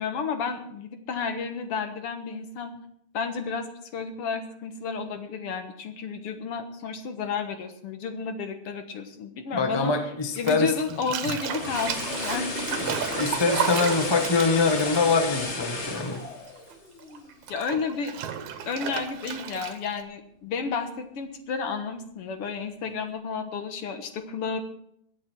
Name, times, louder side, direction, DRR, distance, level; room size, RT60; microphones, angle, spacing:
voice 1, 0.0-2.8 3.1-3.7 3.9-9.9 10.4-12.8 17.5-18.1 18.7-24.6, left 5 dB, 60° left, 8 dB, 2.0 m, -32 dB
voice 2, 9.5-10.7 12.8-16.2, left 4 dB, 15° left, 5 dB, 0.8 m, -24 dB
Bathtub (filling or washing), 10.3-16.2 16.5-20.0, right 8 dB, 80° right, 2.6 m, -33 dB
sound 1, 11.2-17.4 17.7-17.9, left 3 dB, 35° left, 1.2 m, -33 dB
22.0 x 8.6 x 4.6 m, 0.68 s
omnidirectional pair, 3.3 m